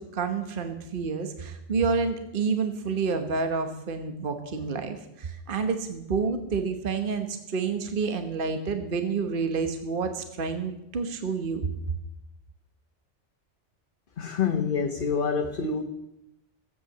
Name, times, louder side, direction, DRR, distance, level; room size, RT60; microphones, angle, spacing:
voice 1, 0.0-11.6, right 5 dB, 50° right, 7 dB, 1.3 m, -29 dB
voice 2, 14.2-15.8, left 6 dB, 50° left, 4 dB, 1.2 m, -27 dB
15.5 x 8.5 x 7.8 m, 0.86 s
omnidirectional pair, 1.2 m